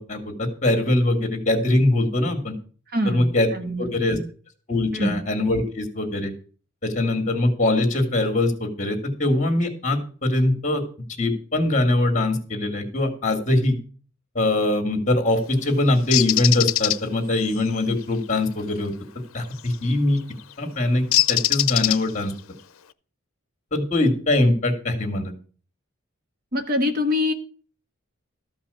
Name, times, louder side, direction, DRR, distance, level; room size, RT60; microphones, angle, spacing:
voice 1, 0.0-2.5 3.1-3.5 3.8-4.2 4.7-6.3 6.8-10.8 11.2-13.8 14.3-18.9 19.3-20.2 20.6-22.3 23.7-25.3, left 1 dB, 35° left, 5 dB, 2.2 m, -22 dB
voice 2, 2.9-3.3 3.5-4.2 4.9-5.2 26.5-27.3, left 1 dB, 45° right, 6 dB, 1.4 m, -24 dB
Bird, 16.1-17.0 19.6-19.8 21.1-22.3, left 14 dB, 90° left, 0.6 m, -21 dB
13.5 x 5.5 x 6.9 m, 0.41 s
head